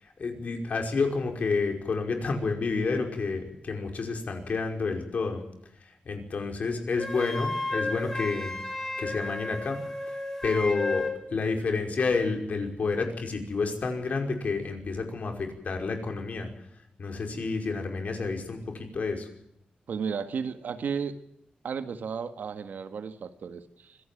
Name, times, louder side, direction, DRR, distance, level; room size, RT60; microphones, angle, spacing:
voice 1, 0.0-5.4 5.8-8.6 9.0-9.8 10.1-16.5 17.0-19.3, left 4 dB, 55° left, 4 dB, 5.3 m, -30 dB
Wind instrument woodwind instrument, 7.0-11.2, left 2 dB, 15° left, 6.2 m, -33 dB
voice 2, 19.9-21.2 21.6-24.0, right 6 dB, 80° right, 9 dB, 1.8 m, -34 dB
25.0 x 17.0 x 7.4 m, 0.76 s
wide cardioid pair, 145°, 3 cm